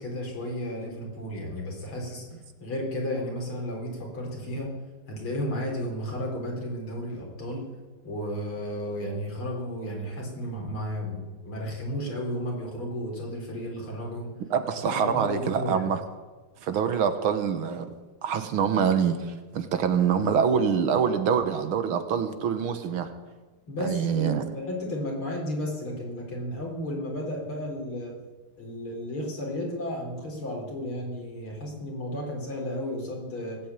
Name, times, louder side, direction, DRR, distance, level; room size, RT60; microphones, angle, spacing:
voice 1, 0.0-2.2 2.6-4.7 5.1-7.6 8.0-14.3 14.9-15.9 23.7-28.2 28.6-33.6, equal, 75° left, -1 dB, 5.0 m, -33 dB
voice 2, 14.4-16.0 16.6-17.9 18.2-23.1 23.8-24.5, right 7 dB, 75° right, 9 dB, 2.0 m, -25 dB
19.0 x 8.6 x 8.9 m, 1.3 s
omnidirectional pair, 2.4 m